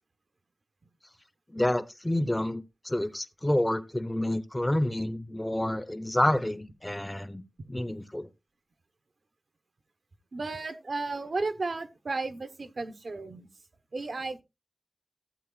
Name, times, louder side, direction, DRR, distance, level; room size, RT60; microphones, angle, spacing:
voice 1, 1.5-8.3, left 1 dB, 20° left, 0.8 m, -29 dB
voice 2, 10.3-13.5 13.9-14.4, right 3 dB, 75° right, 1.0 m, -34 dB
14.5 x 8.1 x 2.4 m
wide cardioid pair, 50°, 0 cm